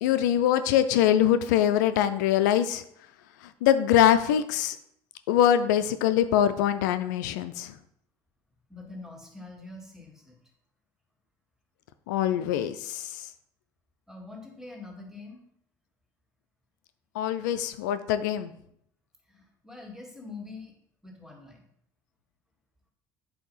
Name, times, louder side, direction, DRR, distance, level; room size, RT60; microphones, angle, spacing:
voice 1, 0.0-2.8 3.4-4.8 5.3-7.8 12.1-13.3 17.1-18.5, left 10 dB, 90° left, 11 dB, 0.4 m, -23 dB
voice 2, 8.7-10.4 14.1-15.4 19.3-20.8 21.0-21.6, left 3 dB, 5° right, 0 dB, 1.9 m, -44 dB
7.7 x 2.8 x 5.5 m, 0.71 s
supercardioid pair, 80°, 10 cm